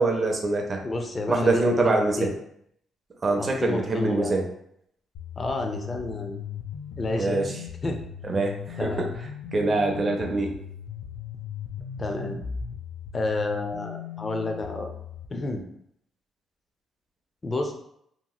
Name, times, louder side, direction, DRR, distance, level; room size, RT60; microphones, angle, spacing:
voice 1, 0.0-0.8 1.3-2.3 3.2-4.5 7.2-7.5 8.3-9.1 9.5-10.5, right 2 dB, 35° right, 2 dB, 0.5 m, -24 dB
voice 2, 0.8-2.4 3.4-4.3 5.4-6.4 7.0-7.4 7.8-8.0 8.8-9.1 12.0-12.4 13.1-14.9 15.3-15.6 17.4-17.7, left 2 dB, 30° left, 3 dB, 0.5 m, -30 dB
sound 1, 5.1-15.3, left 7 dB, 85° left, 0.4 m, -38 dB
2.9 x 2.9 x 2.3 m, 0.72 s
cardioid pair, 90°, 0 cm